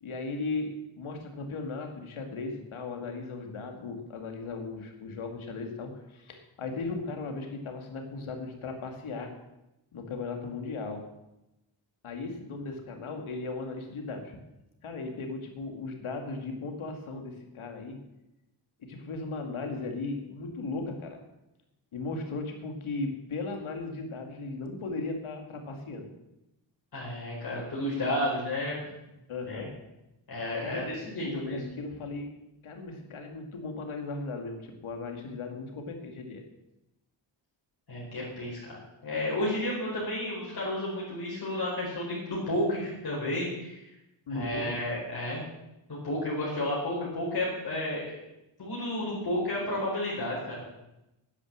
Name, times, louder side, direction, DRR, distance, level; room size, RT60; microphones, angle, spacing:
voice 1, 0.0-9.3 9.9-11.1 12.0-14.4 14.8-18.0 18.8-21.2 21.9-26.1 29.3-29.8 30.6-30.9 31.2-32.3 32.6-36.4 44.3-44.8, left 3 dB, 90° left, 4 dB, 2.4 m, -37 dB
voice 2, 26.9-28.8 29.5-29.7 30.3-31.6 37.9-38.8 39.0-43.9 44.3-45.4 45.9-48.2 48.6-50.7, left 1 dB, 50° left, -5 dB, 4.7 m, -32 dB
11.0 x 10.0 x 7.3 m, 0.92 s
wide cardioid pair, 165°, 47 cm